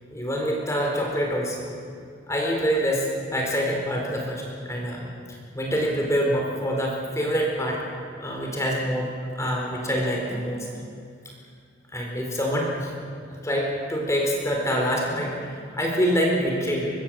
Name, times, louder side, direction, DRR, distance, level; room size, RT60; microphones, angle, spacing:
voice 1, 0.1-1.7 2.3-5.0 5.5-7.8 8.2-10.7 11.9-12.9 13.3-16.9, equal, 15° left, -1 dB, 4.4 m, -26 dB
24.0 x 24.0 x 7.7 m, 2.4 s
head